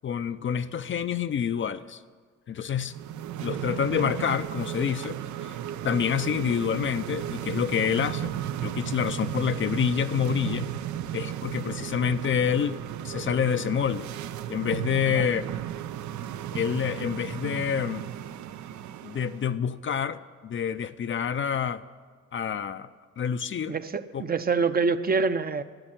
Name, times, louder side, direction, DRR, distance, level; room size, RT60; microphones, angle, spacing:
voice 1, 0.0-2.0 2.5-2.9 3.4-5.6 5.8-10.7 11.1-14.1 14.5-15.5 16.5-18.1 19.0-21.8 22.3-22.9 23.2-23.8 24.1-24.2, left 8 dB, 40° left, 11 dB, 0.5 m, -28 dB
sound 1, 2.8-19.5, right 11 dB, 70° right, 0.6 m, -35 dB
voice 2, 23.7-25.6, right 4 dB, 30° right, 10 dB, 0.6 m, -26 dB
13.0 x 8.8 x 8.9 m, 1.6 s
cardioid pair, 90°, 30 cm